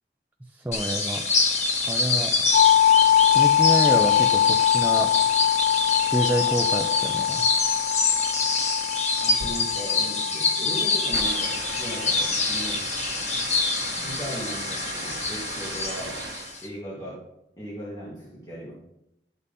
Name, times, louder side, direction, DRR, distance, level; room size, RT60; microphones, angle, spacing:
voice 1, 0.5-1.2 1.9-2.3 3.3-5.1 6.0-7.5, right 1 dB, 10° right, 3 dB, 0.5 m, -28 dB
sound 1, 0.7-16.7, left 3 dB, 40° left, 1.3 m, -26 dB
sound 2, 0.8-16.7, right 4 dB, 70° right, 1.2 m, -40 dB
sound 3, 2.5-12.3, left 10 dB, 70° left, 0.7 m, -23 dB
voice 2, 9.2-12.8 13.9-16.3 16.6-18.7, right 1 dB, 20° left, -7 dB, 2.2 m, -37 dB
12.5 x 5.3 x 4.2 m, 0.84 s
head